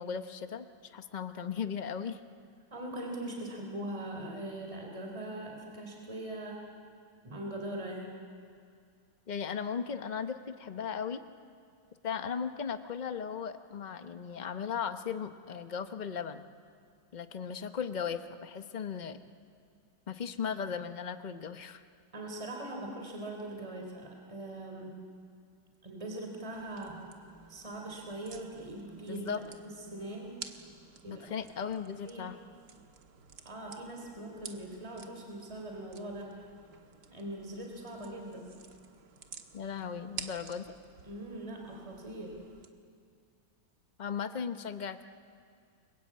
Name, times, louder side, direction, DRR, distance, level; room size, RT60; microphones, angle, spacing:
voice 1, 0.0-2.2 9.3-11.2 12.0-16.5 17.1-19.2 20.1-21.8 29.1-29.4 31.1-32.4 39.5-40.7 44.0-45.0, left 7 dB, 60° left, 9 dB, 0.4 m, -37 dB
voice 2, 2.7-6.6 7.2-8.2 22.1-24.9 25.8-27.0 27.5-29.3 29.9-30.4 31.0-31.3 32.0-32.3 33.4-36.5 37.1-38.4 41.0-42.4, right 1 dB, 15° right, 1 dB, 3.5 m, -41 dB
sound 1, 26.5-42.7, right 6 dB, 55° right, 1.9 m, -51 dB
29.5 x 22.5 x 8.6 m, 2.3 s
omnidirectional pair, 2.3 m